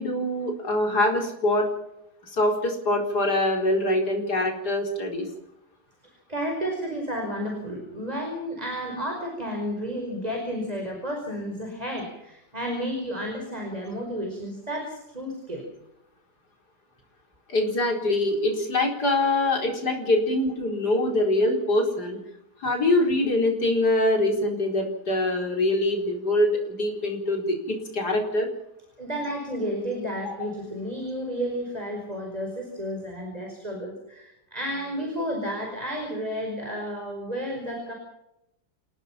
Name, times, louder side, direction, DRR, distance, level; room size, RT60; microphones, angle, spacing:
voice 1, 0.0-1.7 2.3-5.3 17.5-22.2 22.6-28.5 30.2-30.5, left 1 dB, 70° left, 2 dB, 5.1 m, -24 dB
voice 2, 6.3-15.6 29.0-37.9, equal, 20° right, 1 dB, 5.1 m, -32 dB
29.0 x 18.0 x 5.9 m, 0.83 s
omnidirectional pair, 1.8 m